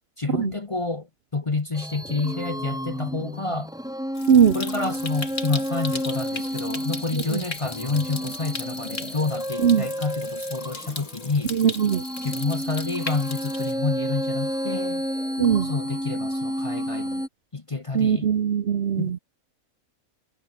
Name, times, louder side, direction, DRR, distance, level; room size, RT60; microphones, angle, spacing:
voice 1, 0.2-1.1 1.3-3.7 4.5-11.5 12.2-15.1 15.6-17.2 17.5-18.3 19.0-19.2, left 3 dB, 25° left, 0.8 m, -29 dB
sound 1, 1.7-17.3, equal, 5° right, 4.0 m, -31 dB
Stream, 4.1-13.7, left 3 dB, 60° left, 3.3 m, -38 dB
voice 2, 11.5-12.0 15.4-15.7 17.9-19.2, right 8 dB, 55° right, 1.0 m, -20 dB
omnidirectional pair, 1.5 m